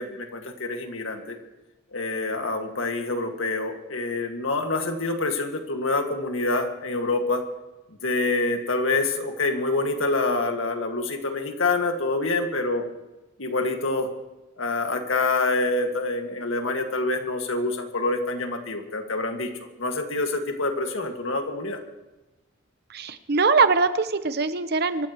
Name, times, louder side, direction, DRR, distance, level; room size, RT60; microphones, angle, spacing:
voice 1, 0.0-1.4 1.9-7.4 8.0-12.8 13.4-14.1 14.6-19.5 19.8-21.8, left 3 dB, 80° left, 4 dB, 1.9 m, -26 dB
voice 2, 22.9-25.1, right 4 dB, 55° right, 11 dB, 0.9 m, -22 dB
25.5 x 14.5 x 3.1 m, 1.1 s
head